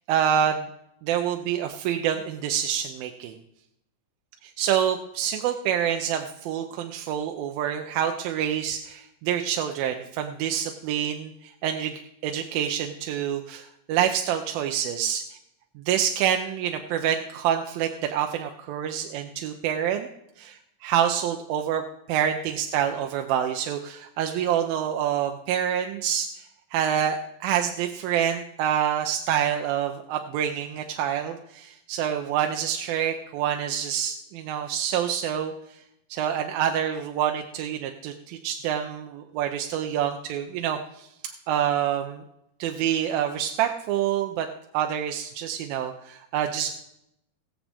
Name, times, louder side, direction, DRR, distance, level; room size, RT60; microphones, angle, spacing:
voice 1, 0.1-0.7 1.0-3.3 4.4-15.2 15.9-20.1 20.4-20.6 20.8-21.8 22.1-26.3 26.7-35.5 36.1-41.1 41.5-42.2 42.6-44.5 44.7-46.7, right 9 dB, 85° right, 5 dB, 2.5 m, -27 dB
20.0 x 7.3 x 3.5 m, 0.80 s
omnidirectional pair, 4.1 m